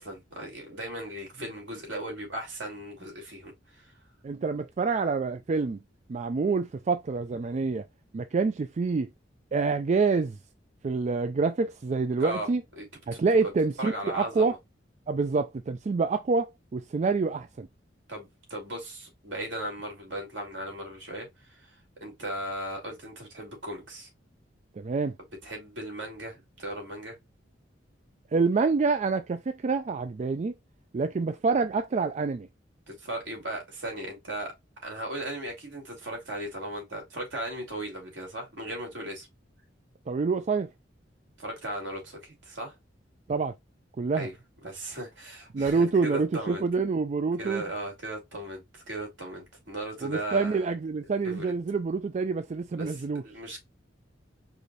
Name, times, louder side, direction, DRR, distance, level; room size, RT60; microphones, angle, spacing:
voice 1, 0.0-3.9 12.2-12.5 12.8-12.9 13.1-13.5 13.8-14.6 18.1-21.7 22.0-24.1 25.4-27.1 32.9-34.5 34.8-39.3 41.4-42.7 44.2-44.3 44.6-46.6 47.4-50.7 51.2-51.5 52.8-53.6, right 1 dB, 75° right, 2.7 m, -37 dB
voice 2, 4.2-5.8 6.1-7.9 8.1-9.1 9.5-10.4 10.8-12.6 13.1-14.6 15.1-17.7 24.8-25.1 28.3-30.5 30.9-32.5 40.1-40.7 43.3-43.5 44.0-44.3 45.5-47.6 50.0-53.2, right 4 dB, 40° right, 0.4 m, -27 dB
4.9 x 2.5 x 4.0 m
head